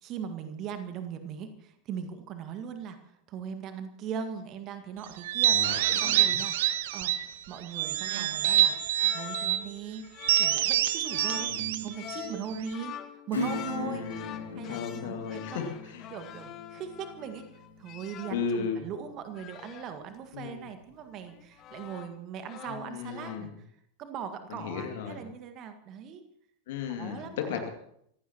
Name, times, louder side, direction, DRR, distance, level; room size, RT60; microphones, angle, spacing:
voice 1, 0.0-6.5 6.9-7.1 7.5-8.7 9.1-10.0 10.4-12.9 13.3-14.8 15.0-15.7 16.1-17.5 17.8-23.7 24.0-26.2 26.8-27.6, right 7 dB, 35° right, 8 dB, 1.8 m, -39 dB
sound 1, 5.2-7.3 7.7-9.6 10.2-12.7, right 12 dB, 55° right, 0.8 m, -26 dB
voice 2, 5.5-6.4 11.3-11.7 13.7-14.1 14.5-16.1 18.3-18.8 20.3-20.7 22.7-23.5 24.5-25.2 26.7-27.7, left 6 dB, 55° left, 5 dB, 2.4 m, -35 dB
sound 2, 6.3-6.5 7.7-18.6 19.4-19.9 21.0-22.2 22.5-23.5, left 12 dB, 35° left, 0.9 m, -46 dB
Acoustic guitar / Strum, 13.3-19.5 19.9-20.0, left 4 dB, 70° left, 2.9 m, -40 dB
25.5 x 16.0 x 3.0 m, 0.71 s
figure-of-eight pair, 90°, 0 cm